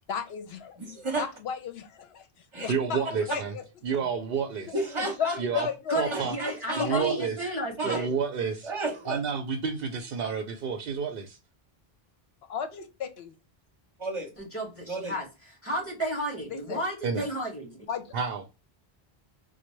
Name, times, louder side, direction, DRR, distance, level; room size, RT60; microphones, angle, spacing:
voice 1, 0.1-0.8 1.2-3.6 4.7-6.2 6.8-7.1 12.5-13.3 16.5-16.8 17.9-18.0, left 7 dB, 75° left, 0.9 m, -34 dB
voice 2, 0.8-1.3 2.5-2.7 4.7-5.4 6.1-6.8 7.8-8.0 8.6-9.2 14.0-14.3 14.9-15.1, right 2 dB, 30° right, 0.9 m, -32 dB
voice 3, 2.7-3.6 3.8-4.7 5.4-5.7 6.0-6.3 6.8-7.4 7.8-8.7 9.1-11.4 17.0-17.2 18.1-18.4, right 6 dB, 65° right, 0.7 m, -30 dB
voice 4, 5.9-8.1 14.4-17.9, right 1 dB, 15° left, 1.6 m, -32 dB
4.2 x 2.2 x 3.0 m
omnidirectional pair, 1.0 m